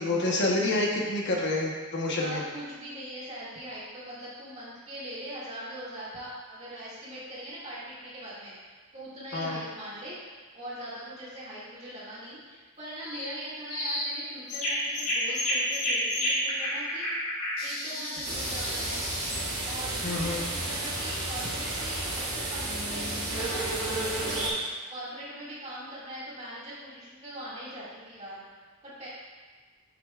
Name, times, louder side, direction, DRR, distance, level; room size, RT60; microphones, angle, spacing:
voice 1, 0.0-2.4 9.3-9.6 20.0-20.4, left 2 dB, 50° left, -2 dB, 1.0 m, -28 dB
voice 2, 2.1-10.2 10.5-17.1 17.6-19.1 19.6-24.4 24.9-28.4 28.8-29.1, right 1 dB, 30° right, -9 dB, 2.1 m, -41 dB
sound 1, 13.0-13.3 13.7-14.1 14.5-19.4, left 1 dB, 75° left, 2.0 m, -31 dB
sound 2, 18.2-24.5, right 2 dB, 85° right, 2.0 m, -32 dB
7.7 x 6.6 x 2.4 m, 1.4 s
head